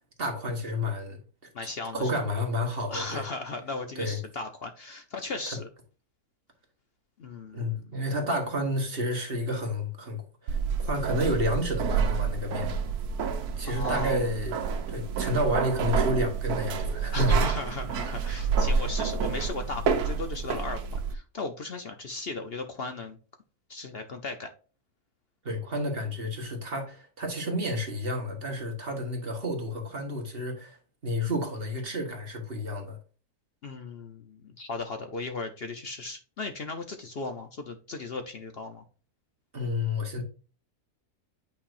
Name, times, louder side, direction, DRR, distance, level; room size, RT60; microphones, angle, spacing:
voice 1, 0.2-1.2 1.9-3.2 4.0-4.2 5.5-5.6 7.5-12.7 13.6-14.6 14.9-17.4 25.4-30.8 31.0-33.0 39.5-40.2, left 1 dB, 40° right, 1.6 m, -30 dB
voice 2, 1.5-2.1 2.9-5.7 7.2-8.0 13.7-14.2 17.1-23.2 23.7-24.5 33.6-38.8, left 3 dB, 50° left, 0.8 m, -36 dB
sound 1, 10.5-21.1, right 5 dB, 80° right, 1.3 m, -28 dB
8.8 x 4.7 x 2.6 m
omnidirectional pair, 1.6 m